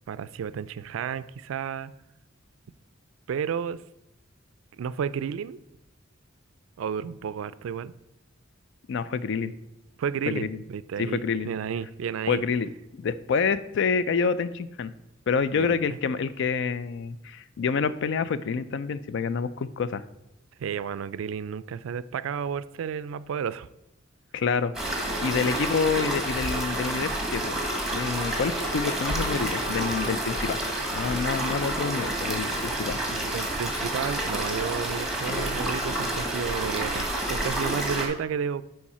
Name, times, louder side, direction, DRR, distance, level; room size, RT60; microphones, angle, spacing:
voice 1, 0.1-1.9 3.3-3.8 4.8-5.6 6.8-7.9 10.0-12.4 15.5-16.0 20.6-23.7 33.1-38.6, right 7 dB, 85° right, 16 dB, 0.3 m, -32 dB
voice 2, 8.9-9.5 10.3-10.6 11.0-11.5 12.3-12.7 13.0-14.9 15.3-20.0 24.3-24.7 25.2-27.6 27.9-30.6 30.9-33.0, left 5 dB, 65° left, 14 dB, 0.4 m, -27 dB
sound 1, 24.7-38.1, right 1 dB, ahead, 1.2 m, -29 dB
Trumpet, 25.5-33.4, left 2 dB, 45° left, 1.2 m, -41 dB
7.2 x 4.7 x 4.2 m, 0.88 s
head